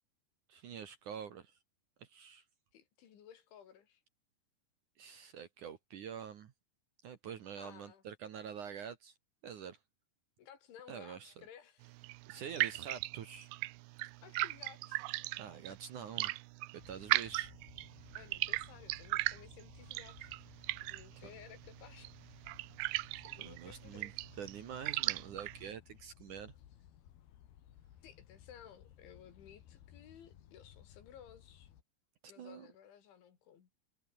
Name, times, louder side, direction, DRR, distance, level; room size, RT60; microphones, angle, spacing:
voice 1, 0.5-1.6 2.0-2.4 5.0-6.5 7.0-9.1 9.4-9.8 10.9-11.3 12.3-13.5 15.4-16.4 16.7-17.5 21.1-21.2 22.9-23.1 23.4-24.1 24.4-26.5 32.2-32.7, right 8 dB, 60° right, 2.4 m, -46 dB
voice 2, 2.7-4.0 7.6-8.0 10.4-12.1 14.2-15.1 15.7-15.8 18.2-22.5 23.2-24.4 28.0-31.7 32.3-33.7, left 9 dB, 90° left, 5.6 m, -57 dB
sound 1, 11.8-25.7, right 21 dB, 80° right, 2.8 m, -39 dB
sound 2, 16.8-31.8, left 11 dB, 65° left, 3.7 m, -59 dB
omnidirectional pair, 5.2 m